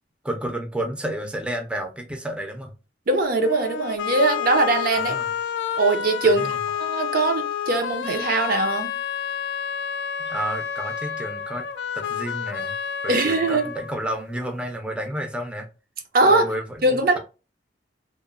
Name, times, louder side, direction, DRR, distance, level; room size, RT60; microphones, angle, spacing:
voice 1, 0.2-2.7 5.0-5.3 6.2-6.6 10.2-11.7 11.9-12.7 13.0-15.7 16.2-16.6 16.9-17.2, right 1 dB, 5° right, 0.4 m, -31 dB
voice 2, 3.1-5.2 5.8-8.9 13.1-13.7 16.1-16.5 16.8-17.2, right 2 dB, 55° right, 0.5 m, -21 dB
sound 1, 3.4-14.4, left 8 dB, 70° left, 0.3 m, -29 dB
2.9 x 2.0 x 2.4 m
head